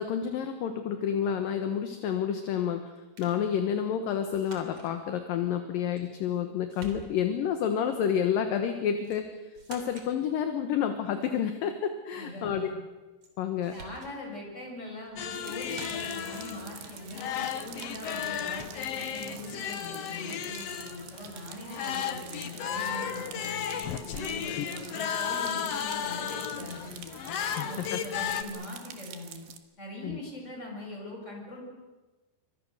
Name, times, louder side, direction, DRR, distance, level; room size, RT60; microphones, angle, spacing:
voice 1, 0.0-2.9 3.2-12.7 13.4-13.7 24.5-24.7 27.6-28.0 30.0-30.2, left 8 dB, 65° left, 7 dB, 2.6 m, -29 dB
sound 1, 3.2-3.4 4.3-4.9 6.0-6.4 6.7-7.4 9.0-9.2 9.5-10.1 13.2-13.3 13.6-14.1 15.1-15.3 15.6-16.3 18.0-18.1 18.5-19.0, right 3 dB, 40° right, 4.1 m, -48 dB
voice 2, 12.2-12.8 13.7-23.6 24.1-27.0 27.5-29.4 29.8-31.7, left 1 dB, 15° left, 0 dB, 7.0 m, -42 dB
sound 2, 15.2-28.4, left 8 dB, 85° left, 1.4 m, -34 dB
sound 3, 15.3-29.6, right 10 dB, 80° right, 3.6 m, -48 dB
28.0 x 24.5 x 6.6 m, 1.2 s
omnidirectional pair, 4.8 m